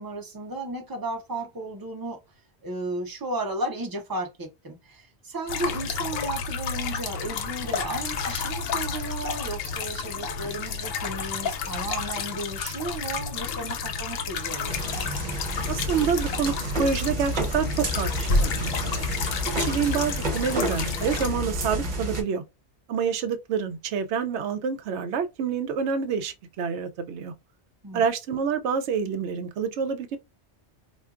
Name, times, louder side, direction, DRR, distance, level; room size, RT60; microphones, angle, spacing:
voice 1, 0.0-2.2 2.6-14.8 27.8-28.0, right 2 dB, 20° right, 0.7 m, -34 dB
sound 1, 5.5-21.3, left 5 dB, 70° left, 0.7 m, -31 dB
sound 2, 14.6-22.2, equal, 45° right, 1.0 m, -30 dB
voice 2, 15.7-19.0 19.6-22.4 22.9-27.3 27.9-30.2, right 6 dB, 85° right, 0.9 m, -27 dB
4.4 x 2.4 x 2.4 m
omnidirectional pair, 1.1 m